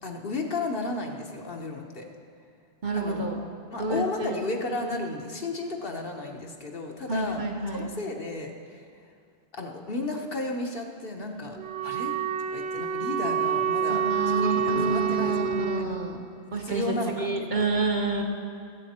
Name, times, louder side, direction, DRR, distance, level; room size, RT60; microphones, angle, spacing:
voice 1, 0.0-2.1 2.9-3.3 3.7-7.4 7.7-8.8 9.5-12.1 12.5-15.5 15.8-16.0 16.6-17.7, left 2 dB, 55° left, 2 dB, 1.2 m, -34 dB
voice 2, 2.8-3.4 3.8-4.4 7.1-7.9 13.9-16.2 16.5-18.2, right 3 dB, 45° right, 1 dB, 1.3 m, -28 dB
Wind instrument woodwind instrument, 11.6-15.9, right 7 dB, 70° right, 0.9 m, -27 dB
19.5 x 8.2 x 4.3 m, 2.3 s
omnidirectional pair, 1.2 m